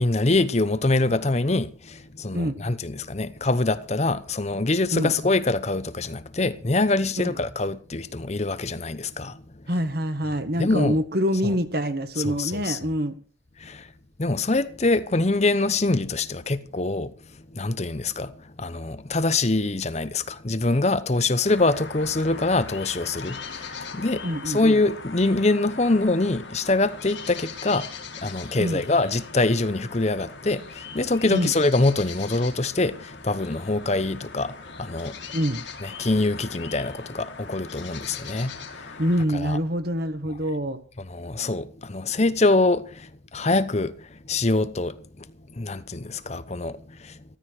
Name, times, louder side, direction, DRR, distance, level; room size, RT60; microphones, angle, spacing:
voice 1, 0.0-9.4 10.6-11.0 11.4-11.6 12.2-12.8 13.6-13.9 14.2-35.3 35.8-39.0 39.3-39.6 41.0-47.2, left 2 dB, 35° left, 0.8 m, -24 dB
voice 2, 9.7-13.2 24.2-24.6 28.6-28.8 31.3-31.5 35.3-35.6 39.0-40.8, equal, 50° right, 1.8 m, -25 dB
sound 1, 21.5-39.3, left 5 dB, 65° left, 2.5 m, -40 dB
14.5 x 14.0 x 4.8 m
head